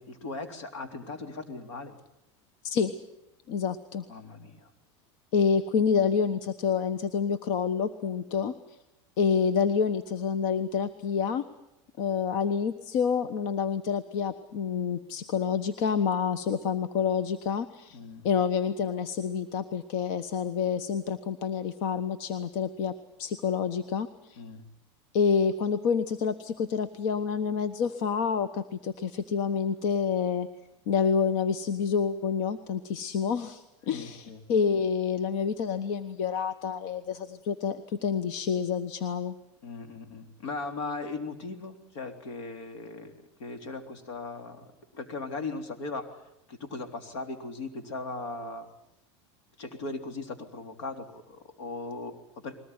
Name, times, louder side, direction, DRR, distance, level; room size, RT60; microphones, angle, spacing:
voice 1, 0.0-2.0 4.1-4.7 17.9-18.3 24.4-24.6 33.9-34.5 39.6-46.1 46.5-48.7 49.6-52.6, left 3 dB, 85° left, 6 dB, 3.6 m, -38 dB
voice 2, 2.6-2.9 3.5-4.0 5.3-8.8 9.2-11.5 12.0-18.0 18.2-24.4 25.1-30.5 30.9-39.3, left 6 dB, 60° left, 12 dB, 1.2 m, -28 dB
21.5 x 19.0 x 9.7 m, 0.85 s
supercardioid pair, 130°, 15 cm